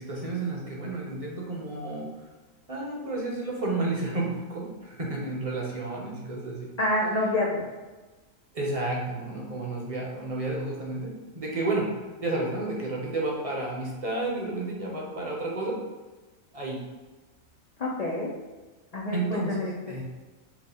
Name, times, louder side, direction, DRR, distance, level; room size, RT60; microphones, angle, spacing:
voice 1, 0.0-2.1 2.7-6.7 8.5-11.9 12.2-15.8 16.5-16.8 19.1-20.0, right 2 dB, 35° right, -3 dB, 0.8 m, -31 dB
voice 2, 6.8-7.6 17.8-18.3 18.9-19.7, left 1 dB, 90° left, -3 dB, 0.3 m, -27 dB
4.8 x 2.1 x 3.4 m, 1.2 s
omnidirectional pair, 1.4 m